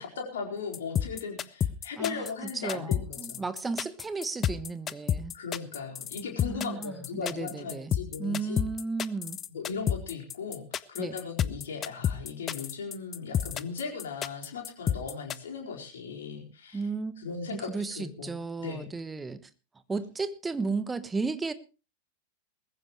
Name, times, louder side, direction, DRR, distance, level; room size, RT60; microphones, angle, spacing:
voice 1, 0.0-3.4 5.3-8.6 9.5-16.8 17.2-17.7 17.9-18.9, left 5 dB, 60° left, 1 dB, 4.4 m, -37 dB
sound 1, 0.7-15.4, left 9 dB, 25° left, 0.7 m, -30 dB
voice 2, 2.0-2.3 2.6-5.3 6.4-9.4 11.0-11.2 16.7-17.1 17.5-19.4 19.9-21.5, right 4 dB, 10° right, 14 dB, 1.2 m, -34 dB
20.5 x 14.5 x 3.1 m, 0.32 s
figure-of-eight pair, 90°, 0 cm